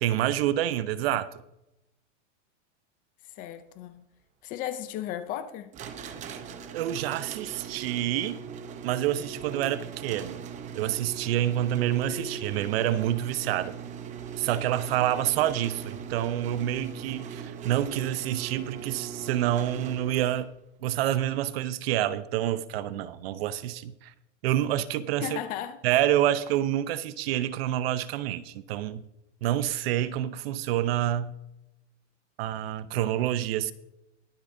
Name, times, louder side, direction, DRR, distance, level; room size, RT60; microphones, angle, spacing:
voice 1, 0.0-1.3 6.0-6.4 6.7-8.4 8.8-10.4 10.8-13.7 14.4-20.5 20.8-24.1 24.4-25.4 25.8-29.0 29.4-31.3 32.4-33.7, right 12 dB, 55° right, 0.8 m, -28 dB
voice 2, 3.4-4.0 4.4-5.7 25.2-25.8, left 11 dB, 25° left, 0.5 m, -35 dB
sound 1, 5.7-20.4, right 7 dB, 20° right, 0.8 m, -40 dB
21.5 x 8.5 x 2.7 m
supercardioid pair, 155°, 36 cm